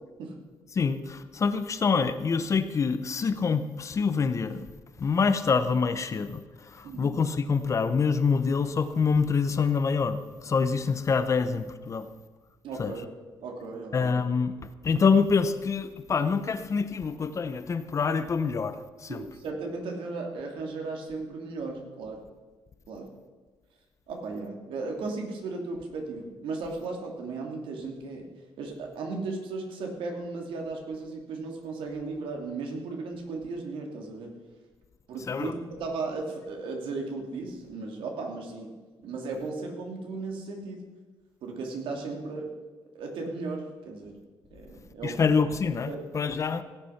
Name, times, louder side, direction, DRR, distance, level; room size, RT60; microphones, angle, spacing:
voice 1, 0.7-4.7 5.0-12.1 12.8-12.9 13.9-19.3 35.3-35.5 45.0-46.6, left 5 dB, 35° left, 11 dB, 0.8 m, -26 dB
voice 2, 12.6-13.1 13.4-14.2 19.1-22.2 22.9-23.1 24.1-28.2 28.6-34.3 35.1-38.7 39.0-40.8 41.4-42.5 42.9-44.2 44.5-45.1 45.9-46.0, right 3 dB, 80° right, 2 dB, 2.9 m, -36 dB
16.5 x 8.4 x 5.9 m, 1.3 s
cardioid pair, 125°, 9 cm